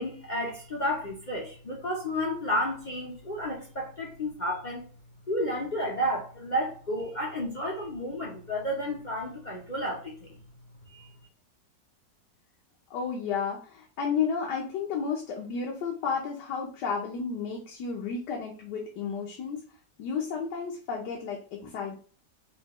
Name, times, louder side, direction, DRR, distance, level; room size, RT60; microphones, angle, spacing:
voice 1, 0.0-4.8 5.3-10.3 10.9-11.1, equal, 45° left, 0.6 m, -31 dB
voice 2, 12.9-19.6 20.0-22.0, left 6 dB, 70° left, 1.4 m, -32 dB
5.6 x 2.4 x 3.0 m
omnidirectional pair, 2.0 m